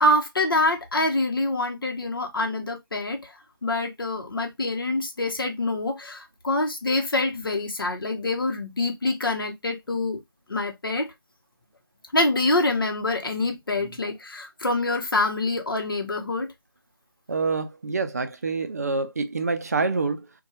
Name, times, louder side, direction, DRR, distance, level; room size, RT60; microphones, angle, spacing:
voice 1, 0.0-3.3 3.6-10.2 10.5-11.1 12.1-16.5, left 2 dB, 65° left, 0.9 m, -25 dB
voice 2, 17.3-20.3, right 4 dB, 45° right, 0.4 m, -27 dB
2.7 x 2.3 x 2.6 m
figure-of-eight pair, 165°, 12 cm